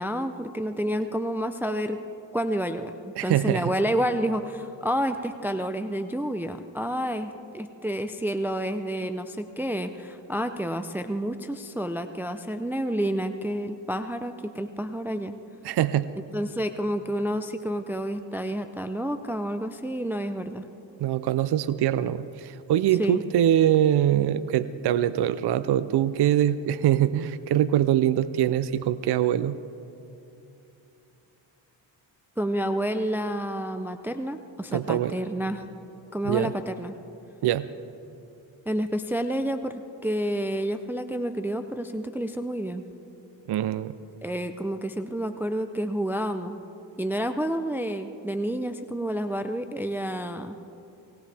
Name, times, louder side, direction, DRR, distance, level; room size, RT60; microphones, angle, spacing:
voice 1, 0.0-2.0 2.3-2.9 3.2-15.3 16.3-20.6 23.0-23.2 32.4-35.6 36.1-36.9 38.7-42.8 44.2-46.6 47.0-50.6, equal, 5° right, 7 dB, 0.5 m, -29 dB
voice 2, 3.2-3.7 15.6-16.1 21.0-29.6 34.7-35.1 36.2-36.5 37.4-37.7 43.5-43.9, right 11 dB, 60° right, 14 dB, 0.6 m, -23 dB
19.5 x 18.5 x 3.4 m, 2.8 s
cardioid pair, 75°, 46 cm